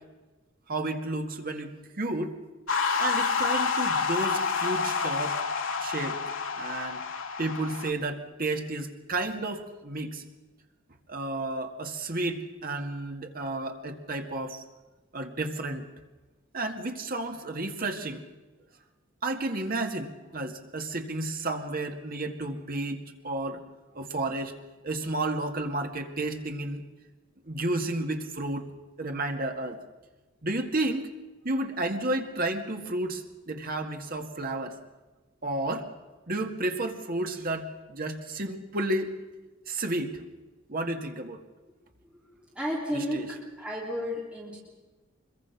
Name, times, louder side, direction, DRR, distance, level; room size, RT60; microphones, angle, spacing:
voice 1, 0.7-2.4 3.0-5.4 5.8-6.2 6.6-7.0 7.4-10.2 11.1-14.6 15.1-15.8 16.5-18.2 19.2-23.6 23.9-24.5 24.8-26.8 27.5-28.6 29.0-29.8 30.4-31.1 31.4-34.8 35.4-35.9 36.3-39.2 39.7-40.2 40.7-41.4 43.1-43.2, right 2 dB, 45° right, 5 dB, 1.9 m, -32 dB
sound 1, 2.7-7.9, left 5 dB, 75° left, 1.7 m, -28 dB
voice 2, 42.5-44.6, equal, 5° right, -3 dB, 3.1 m, -33 dB
24.5 x 22.0 x 5.9 m, 1.2 s
head